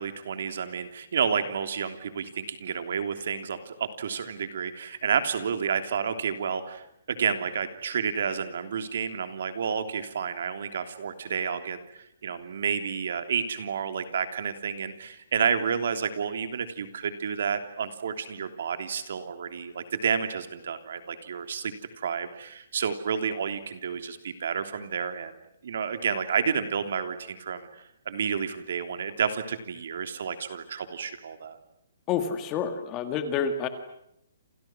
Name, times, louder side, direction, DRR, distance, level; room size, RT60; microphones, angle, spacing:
voice 1, 0.0-27.7 28.0-31.6, right 6 dB, 50° right, 8 dB, 3.2 m, -30 dB
voice 2, 32.1-33.7, left 7 dB, 15° left, 8 dB, 1.8 m, -28 dB
29.0 x 28.5 x 6.3 m, 0.75 s
hypercardioid pair, 180°, 0 cm